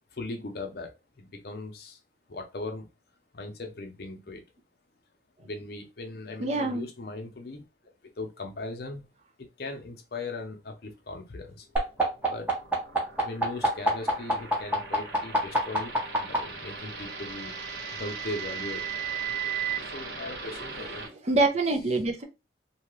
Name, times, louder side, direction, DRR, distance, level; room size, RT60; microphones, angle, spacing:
voice 1, 0.2-0.9 1.2-2.0 2.3-2.9 3.3-4.4 5.4-7.6 8.2-9.0 9.4-11.6 12.2-12.5 13.2-15.9 16.2-17.5 17.9-19.0 19.9-21.1, left 2 dB, 60° left, 4 dB, 0.6 m, -38 dB
voice 2, 6.4-6.9 19.8-19.9 20.8-21.0 21.2-22.2, right 2 dB, 40° right, 5 dB, 0.5 m, -26 dB
sound 1, 11.8-16.4 17.5-19.8, right 2 dB, 10° right, 0.8 m, -27 dB
sound 2, 11.9-21.1, right 3 dB, 80° right, 1.1 m, -41 dB
2.8 x 2.3 x 3.1 m, 0.28 s
head